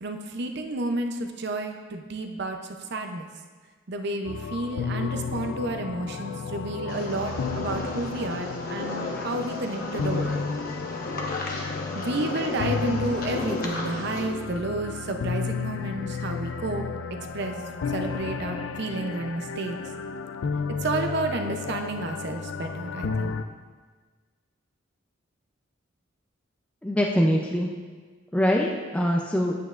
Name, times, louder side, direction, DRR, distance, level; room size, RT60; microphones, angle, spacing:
voice 1, 0.0-2.6 2.9-3.3 3.9-10.4 11.9-16.8 17.3-17.5 17.9-19.8 20.8-23.4, right 2 dB, 55° right, 5 dB, 0.6 m, -31 dB
sound 1, 4.2-23.4, left 5 dB, 75° left, 0.4 m, -32 dB
sound 2, 6.9-14.2, left 2 dB, 45° left, 1.1 m, -35 dB
voice 2, 26.8-27.7 28.3-29.6, equal, 5° left, -1 dB, 0.4 m, -24 dB
9.1 x 8.4 x 2.5 m, 1.4 s
head